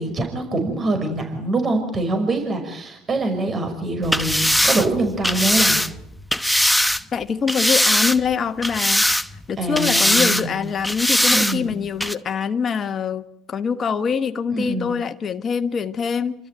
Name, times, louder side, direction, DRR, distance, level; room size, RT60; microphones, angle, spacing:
voice 1, 0.0-5.8 9.6-10.7 11.3-11.7 14.5-14.9, right 2 dB, 30° right, 5.7 m, -24 dB
sound 1, 4.0-7.0 7.5-8.3 8.6-9.5 9.8-10.4 10.8-11.6 12.0-12.1, left 1 dB, 5° left, 0.9 m, -20 dB
voice 2, 7.1-9.1 9.5-16.3, left 6 dB, 35° left, 1.4 m, -24 dB
28.5 x 13.5 x 9.3 m
supercardioid pair, 95°, 0 cm